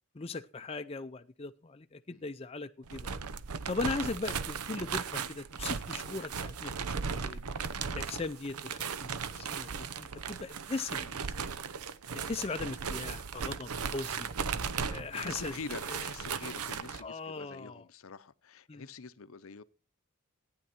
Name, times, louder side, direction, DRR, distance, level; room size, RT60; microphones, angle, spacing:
voice 1, 0.1-3.1 3.7-6.7 7.1-7.4 7.9-9.7 10.0-11.4 12.1-14.3 14.9-15.5 15.9-16.0 17.0-17.8 18.7-18.8, left 3 dB, 25° left, 0.5 m, -39 dB
sound 1, 2.8-17.0, right 6 dB, 85° right, 0.7 m, -37 dB
voice 2, 15.1-19.6, left 5 dB, 65° left, 0.7 m, -46 dB
15.0 x 9.6 x 4.4 m
head